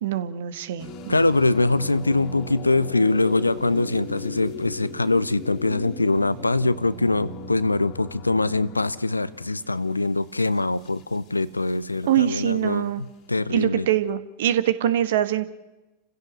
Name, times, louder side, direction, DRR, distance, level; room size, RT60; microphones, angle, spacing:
voice 1, 0.0-1.3 12.1-13.0 13.5-15.4, right 11 dB, 55° right, 13 dB, 1.4 m, -24 dB
sound 1, 0.8-11.7, left 3 dB, 40° left, 2.4 m, -38 dB
voice 2, 1.1-13.9, left 2 dB, 80° left, 18 dB, 0.7 m, -23 dB
30.0 x 16.0 x 6.6 m, 1.1 s
figure-of-eight pair, 90°, 0 cm